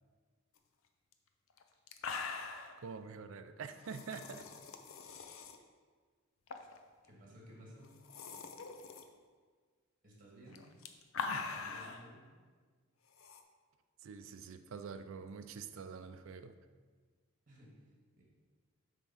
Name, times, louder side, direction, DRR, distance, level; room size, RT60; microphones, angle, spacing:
sound 1, 1.1-1.2 1.6-1.7 1.9-2.8 3.8-5.6 6.5-6.8 7.1-7.2 7.8-9.0 10.5-12.0 13.2-13.4, left 4 dB, 75° left, 0.6 m, -42 dB
voice 1, 2.8-4.4 14.0-16.6, right 5 dB, 70° right, 9 dB, 0.4 m, -46 dB
voice 2, 7.0-7.9 10.0-10.6 11.3-12.2 17.5-18.2, right 1 dB, 40° right, -3 dB, 1.9 m, -56 dB
8.2 x 3.6 x 5.7 m, 1.5 s
head